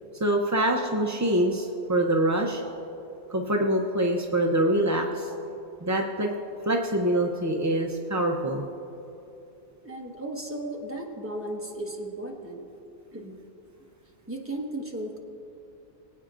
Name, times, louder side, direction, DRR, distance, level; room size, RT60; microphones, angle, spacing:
voice 1, 0.2-2.6 3.3-5.3 5.8-6.3 6.7-8.6, right 1 dB, 30° right, 1 dB, 0.3 m, -25 dB
voice 2, 9.8-12.7 13.1-13.4 14.3-15.2, right 1 dB, 10° right, -1 dB, 1.2 m, -35 dB
23.0 x 9.0 x 2.5 m, 2.8 s
omnidirectional pair, 1.2 m